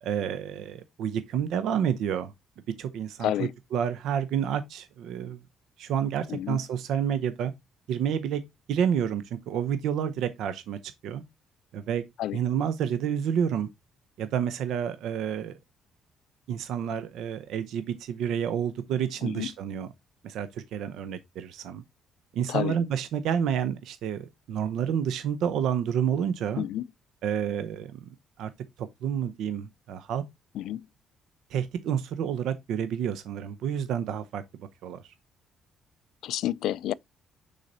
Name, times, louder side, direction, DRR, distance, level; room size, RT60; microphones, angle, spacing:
voice 1, 0.0-2.3 2.8-5.4 5.8-7.5 7.9-8.4 8.7-11.2 11.7-12.0 12.3-13.7 14.2-15.6 16.5-19.9 20.2-21.8 22.3-26.6 27.2-28.5 28.8-30.2 31.5-35.1, right 8 dB, 75° right, 0.7 m, -29 dB
voice 2, 30.6-30.9 36.2-36.9, left 13 dB, 80° left, 0.3 m, -29 dB
6.3 x 4.1 x 4.1 m
cardioid pair, 120°, 0 cm